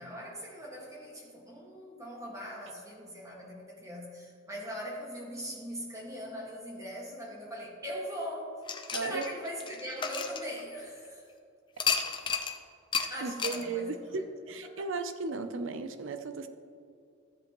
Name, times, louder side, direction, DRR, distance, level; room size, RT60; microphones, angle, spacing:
voice 1, 0.0-8.5 9.0-11.2 13.1-14.2 14.8-14.9, equal, 15° right, -3 dB, 1.8 m, -41 dB
sound 1, 8.7-11.1 11.8-12.6 12.9-13.1 13.4-13.6, left 5 dB, 25° left, 0.7 m, -32 dB
voice 2, 8.9-9.3 13.2-16.5, right 3 dB, 65° right, 9 dB, 0.6 m, -35 dB
14.0 x 7.7 x 3.1 m, 2.4 s
head